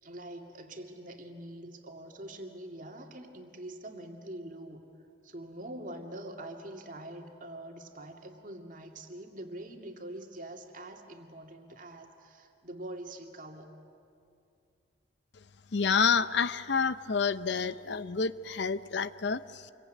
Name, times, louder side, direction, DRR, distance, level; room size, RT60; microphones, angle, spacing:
voice 1, 0.0-4.9 5.2-13.7, right 1 dB, 45° right, 3 dB, 2.4 m, -44 dB
voice 2, 15.7-19.7, left 5 dB, 65° left, 14 dB, 0.6 m, -29 dB
27.5 x 23.0 x 9.3 m, 2.5 s
head